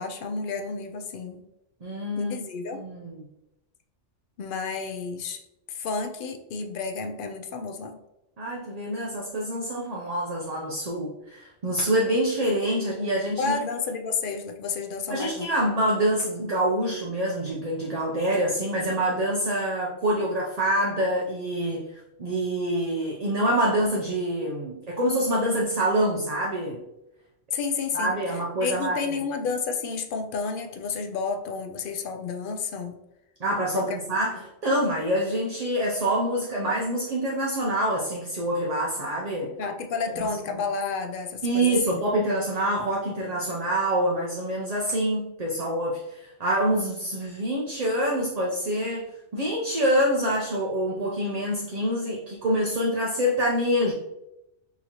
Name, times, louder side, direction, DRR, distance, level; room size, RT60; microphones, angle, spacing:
voice 1, 0.0-1.4 2.2-2.8 4.4-5.4 5.7-8.0 13.4-15.5 27.5-28.1 28.6-33.0 33.7-34.0 34.3-34.4 39.6-42.0, left 5 dB, 60° left, 6 dB, 0.6 m, -31 dB
voice 2, 1.8-2.4 2.7-3.2 8.4-13.6 15.1-26.8 27.9-29.1 33.4-39.5 40.2-40.3 41.4-49.1 49.3-53.9, right 1 dB, 45° right, -3 dB, 0.5 m, -26 dB
5.6 x 2.8 x 2.9 m, 0.88 s
omnidirectional pair, 1.2 m